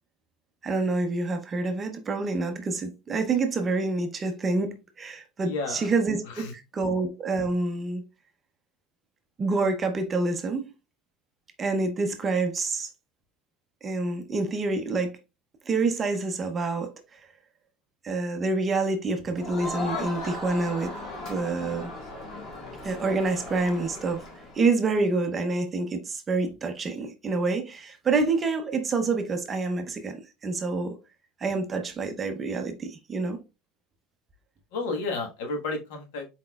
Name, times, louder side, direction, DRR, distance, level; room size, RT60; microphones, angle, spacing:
voice 1, 0.6-8.0 9.4-10.7 11.6-12.9 13.8-15.2 15.7-17.2 18.0-20.9 21.3-21.9 22.8-24.2 24.5-31.0 31.4-33.4, right 3 dB, 15° right, 0.5 m, -27 dB
voice 2, 5.4-5.9 6.3-6.5 34.7-36.3, left 3 dB, 75° left, 1.2 m, -32 dB
Crowd, 19.4-24.7, left 2 dB, 30° left, 1.5 m, -37 dB
4.3 x 4.1 x 2.3 m
cardioid pair, 175°, 0 cm